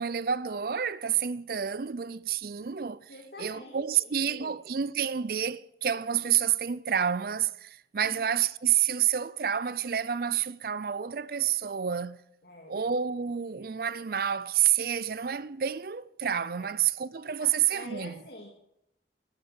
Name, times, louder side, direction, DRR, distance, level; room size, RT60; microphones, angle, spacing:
voice 1, 0.0-3.0 3.4-12.2 12.7-18.1, right 9 dB, 55° right, 0.5 m, -29 dB
voice 2, 3.1-4.6 8.0-8.2 12.4-12.8 16.6-16.7 17.4-18.5, left 1 dB, 60° left, 2.3 m, -46 dB
12.0 x 12.0 x 8.6 m
head